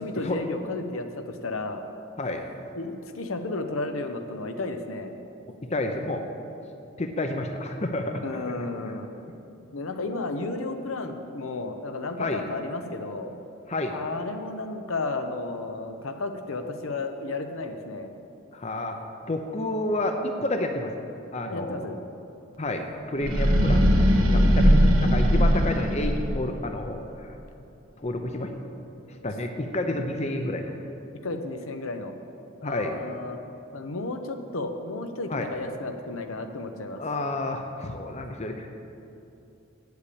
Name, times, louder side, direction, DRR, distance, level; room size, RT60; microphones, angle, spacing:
voice 1, 0.0-1.8 2.7-5.1 8.2-9.1 9.7-13.3 13.9-18.1 21.5-22.0 29.2-29.3 31.2-32.1 32.6-33.4 33.7-37.0, left 2 dB, 75° left, 6 dB, 0.8 m, -33 dB
voice 2, 5.6-6.2 7.0-8.6 8.8-8.9 9.2-9.3 12.2-12.4 13.7-14.0 18.5-19.0 19.3-20.9 21.3-21.9 22.6-27.3 28.0-28.6 29.2-30.7 32.6-33.0 35.3-35.5 36.9-38.7, left 1 dB, 30° left, 5 dB, 0.6 m, -30 dB
sound 1, 23.2-26.5, equal, 90° right, 1.2 m, -19 dB
8.4 x 8.2 x 8.5 m, 2.8 s
head